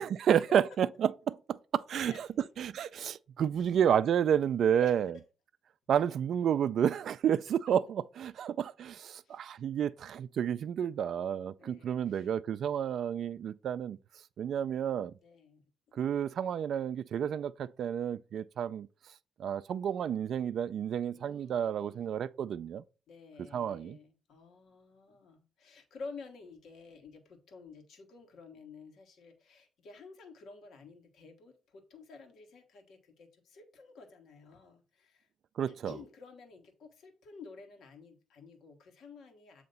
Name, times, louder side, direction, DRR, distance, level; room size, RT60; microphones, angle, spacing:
voice 1, 0.0-2.3 2.6-5.1 5.9-14.0 14.4-15.1 15.9-18.9 19.4-22.8 23.5-24.0 35.6-36.0, right 9 dB, 65° right, 0.3 m, -30 dB
voice 2, 2.0-2.5 3.6-3.7 4.7-4.9 9.2-9.4 11.5-12.3 15.2-15.6 21.1-22.1 23.1-35.3 35.7-39.6, left 4 dB, 70° left, 1.4 m, -51 dB
7.8 x 2.9 x 5.3 m
cardioid pair, 90°, 0 cm